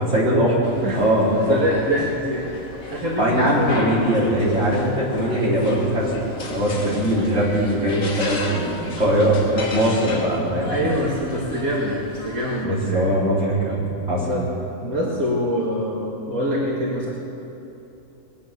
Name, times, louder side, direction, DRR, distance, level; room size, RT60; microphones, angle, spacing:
voice 1, 0.0-1.6 3.2-6.1 6.4-10.8 12.6-14.3, equal, 50° right, -7 dB, 4.3 m, -21 dB
sound 1, 0.6-12.6, left 2 dB, 80° left, 2.0 m, -34 dB
voice 2, 1.5-2.5 2.9-3.8 10.7-13.0 14.2-14.4 14.8-17.1, equal, 90° right, -5 dB, 2.6 m, -25 dB
21.0 x 9.9 x 6.7 m, 2.9 s
omnidirectional pair, 1.5 m